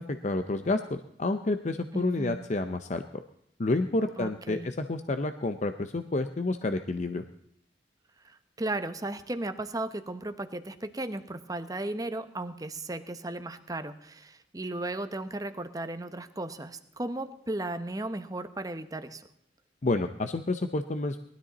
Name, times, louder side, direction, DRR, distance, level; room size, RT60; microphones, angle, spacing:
voice 1, 0.0-3.0 3.6-7.2 19.8-21.2, left 2 dB, 40° left, 8 dB, 0.6 m, -29 dB
voice 2, 1.9-2.4 4.2-4.7 8.2-19.3, right 2 dB, 20° right, 10 dB, 0.9 m, -35 dB
19.0 x 13.0 x 4.1 m, 0.72 s
head